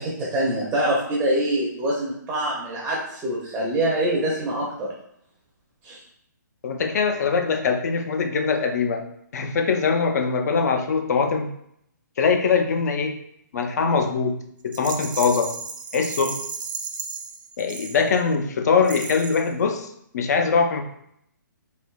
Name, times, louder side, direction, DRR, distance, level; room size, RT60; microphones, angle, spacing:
voice 1, 0.0-4.9 5.8-6.0, right 1 dB, 10° right, -4 dB, 0.5 m, -25 dB
voice 2, 6.6-9.0 9.3-11.5 12.2-13.1 13.5-14.3 14.6-15.5 15.9-16.4 17.6-19.9 20.1-20.8, left 5 dB, 55° left, 5 dB, 0.5 m, -22 dB
Rattle, 14.7-18.4 18.8-19.5, right 5 dB, 80° right, 0.4 m, -34 dB
3.3 x 2.6 x 2.3 m, 0.71 s
hypercardioid pair, 150°, 10 cm